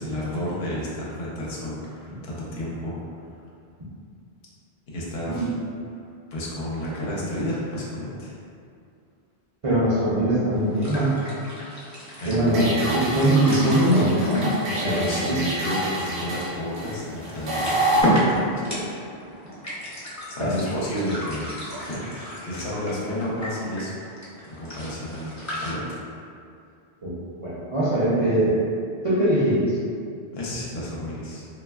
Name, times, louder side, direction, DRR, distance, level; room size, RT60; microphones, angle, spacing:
voice 1, 0.0-3.0 4.9-5.5 6.3-8.4 12.2-13.1 14.8-18.7 20.3-24.0 24.4-26.0 30.3-31.5, equal, 70° left, -6 dB, 0.9 m, -31 dB
voice 2, 9.6-11.2 12.2-15.4 20.4-20.5 27.0-28.6 29.0-29.8, right 1 dB, 45° right, -11 dB, 0.4 m, -22 dB
sound 1, 10.5-25.7, equal, 25° left, 0.4 m, -33 dB
sound 2, 12.5-18.0, right 1 dB, 80° right, 0.9 m, -28 dB
3.1 x 2.3 x 2.2 m, 2.4 s
omnidirectional pair, 1.1 m